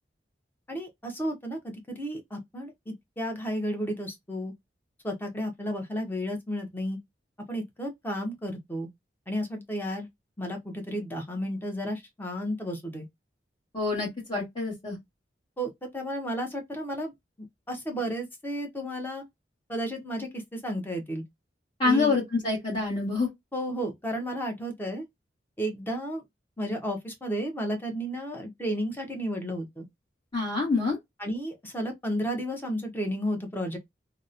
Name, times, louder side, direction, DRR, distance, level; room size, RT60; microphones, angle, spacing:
voice 1, 0.7-4.5 5.0-7.0 7.5-8.9 9.3-10.1 10.4-13.0 15.6-17.1 17.4-19.2 19.7-21.2 21.8-22.1 23.5-25.0 25.6-26.2 26.6-29.8 31.2-33.8, equal, 10° left, 0.7 m, -32 dB
voice 2, 13.7-15.0 21.8-23.3 30.3-31.0, left 3 dB, 30° left, 1.2 m, -26 dB
2.9 x 2.0 x 2.4 m
head